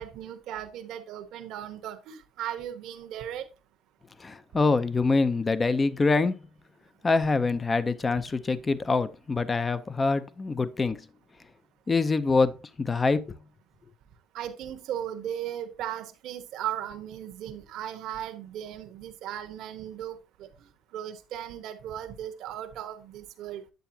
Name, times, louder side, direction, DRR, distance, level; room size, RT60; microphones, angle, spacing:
voice 1, 0.0-3.4 14.3-20.2 20.9-23.6, right 10 dB, 70° right, 1.2 m, -37 dB
voice 2, 4.2-6.4 7.0-11.0 11.9-13.4, left 3 dB, 20° left, 0.6 m, -25 dB
9.2 x 8.0 x 2.8 m
cardioid pair, 125°, 0 cm